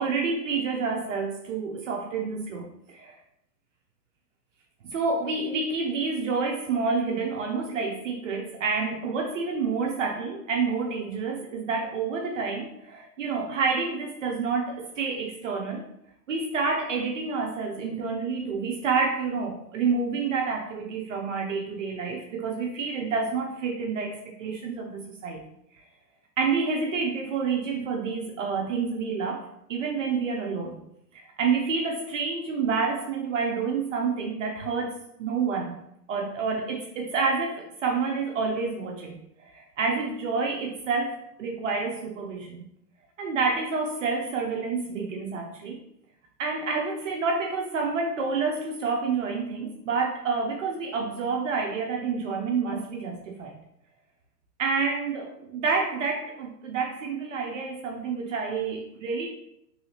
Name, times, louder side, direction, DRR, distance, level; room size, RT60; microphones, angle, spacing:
voice 1, 0.0-3.2 4.8-15.8 16.3-25.5 26.4-29.4 29.7-30.8 31.1-35.8 36.1-39.2 39.5-42.6 43.2-45.8 46.4-53.6 54.6-59.3, right 4 dB, 50° right, 1 dB, 0.5 m, -28 dB
3.1 x 2.7 x 2.9 m, 0.78 s
hypercardioid pair, 145°, 50 cm